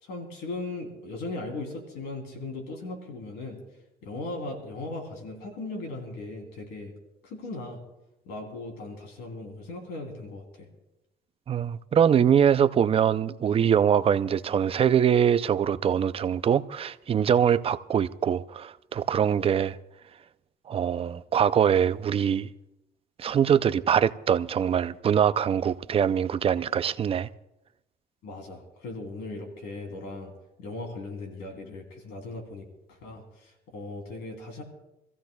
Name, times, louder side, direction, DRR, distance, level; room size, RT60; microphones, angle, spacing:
voice 1, 0.0-3.6 4.0-6.9 7.2-7.8 8.2-10.7 28.2-30.3 30.6-34.6, left 2 dB, 85° left, 3.1 m, -38 dB
voice 2, 11.5-19.8 20.7-22.5 23.2-27.3, right 8 dB, 35° right, 0.5 m, -23 dB
26.5 x 15.0 x 2.3 m
cardioid pair, 110°, 17 cm